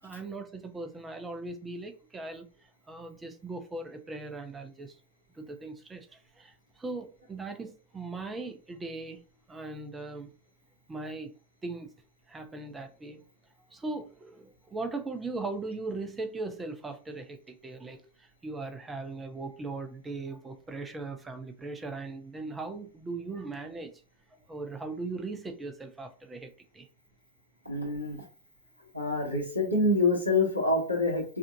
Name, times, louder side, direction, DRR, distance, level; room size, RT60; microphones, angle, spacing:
voice 1, 0.0-5.0 5.3-9.2 9.5-10.3 10.9-11.3 11.6-11.9 12.3-13.2 13.7-23.9 24.5-26.9, right 3 dB, 15° right, 0.6 m, -39 dB
voice 2, 27.6-28.2 28.9-31.4, left 2 dB, 90° left, 1.4 m, -26 dB
4.9 x 2.5 x 2.7 m
figure-of-eight pair, 90°, 0 cm